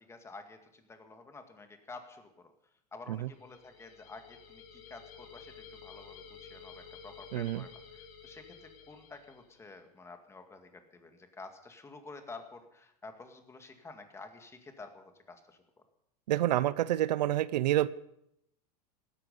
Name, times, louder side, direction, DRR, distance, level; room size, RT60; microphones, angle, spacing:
voice 1, 0.0-2.5 2.9-15.6, left 3 dB, 15° left, 6 dB, 2.1 m, -50 dB
sound 1, 3.3-9.7, left 6 dB, 60° left, 4.2 m, -52 dB
voice 2, 7.3-7.6 16.3-17.9, right 14 dB, 90° right, 18 dB, 0.7 m, -28 dB
17.0 x 14.0 x 5.4 m, 0.79 s
supercardioid pair, 135°, 21 cm